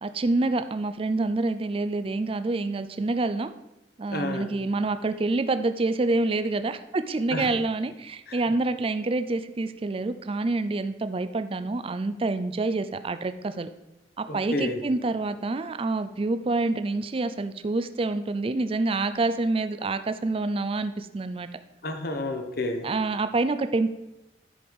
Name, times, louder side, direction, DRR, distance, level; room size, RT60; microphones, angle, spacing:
voice 1, 0.0-3.5 4.0-13.7 14.2-21.5 22.8-23.9, right 3 dB, 30° right, 11 dB, 0.4 m, -27 dB
voice 2, 4.1-4.5 7.3-7.5 8.3-8.4 14.3-14.8 21.8-22.9, left 2 dB, 60° left, 6 dB, 1.1 m, -30 dB
10.0 x 4.8 x 5.2 m, 0.91 s
head